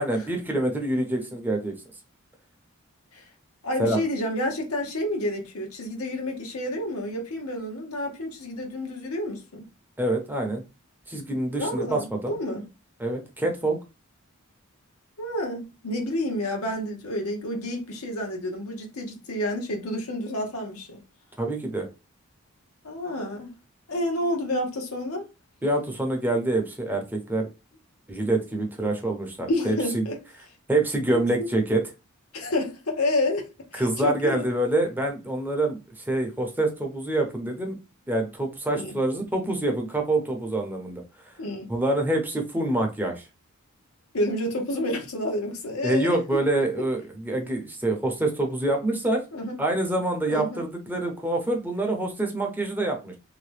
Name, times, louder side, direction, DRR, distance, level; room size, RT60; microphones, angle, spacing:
voice 1, 0.0-1.8 3.8-4.0 10.0-10.6 11.1-12.3 13.0-13.8 21.4-21.9 25.6-27.5 28.1-30.0 30.7-31.8 33.7-35.8 36.1-37.8 38.1-41.0 41.7-43.2 45.8-49.2 49.6-53.2, right 2 dB, 10° right, 0.7 m, -26 dB
voice 2, 3.6-9.7 11.6-12.7 15.2-21.0 22.8-23.5 23.9-25.3 29.5-30.2 31.1-31.5 32.3-33.5 33.7-34.4 38.7-39.0 41.4-41.7 44.1-46.2 49.3-49.6 50.3-50.6, left 1 dB, 85° left, 0.9 m, -29 dB
2.8 x 2.1 x 3.2 m
head